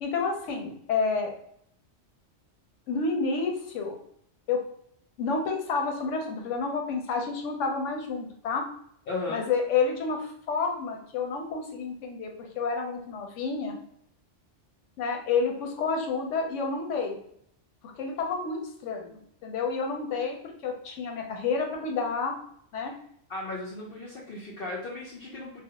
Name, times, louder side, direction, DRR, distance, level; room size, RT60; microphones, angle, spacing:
voice 1, 0.0-1.3 2.9-4.0 4.5-4.6 5.2-8.6 9.3-13.8 15.0-17.2 17.9-22.3 22.7-22.9, left 4 dB, 90° left, 2 dB, 0.9 m, -29 dB
voice 2, 9.1-9.5 23.3-25.6, left 2 dB, 60° left, -4 dB, 0.7 m, -36 dB
2.4 x 2.0 x 2.8 m, 0.67 s
omnidirectional pair, 1.2 m